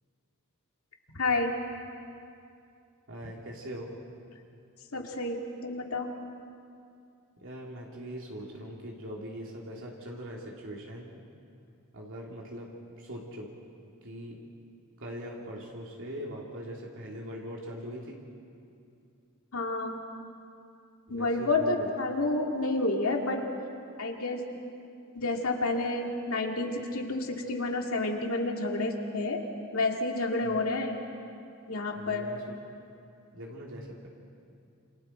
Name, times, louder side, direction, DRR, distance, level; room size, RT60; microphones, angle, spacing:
voice 1, 1.1-1.5 4.9-6.1 19.5-20.0 21.1-23.4 24.0-24.4 25.2-29.4 29.7-31.0 31.7-32.3, left 2 dB, 80° left, 1 dB, 2.4 m, -29 dB
voice 2, 3.1-3.9 7.4-11.2 11.9-13.5 14.0-14.4 15.0-18.2 21.1-21.9 30.4-30.6 31.9-32.5 33.3-34.1, equal, 65° right, -3 dB, 2.8 m, -41 dB
28.0 x 28.0 x 4.5 m, 2.5 s
head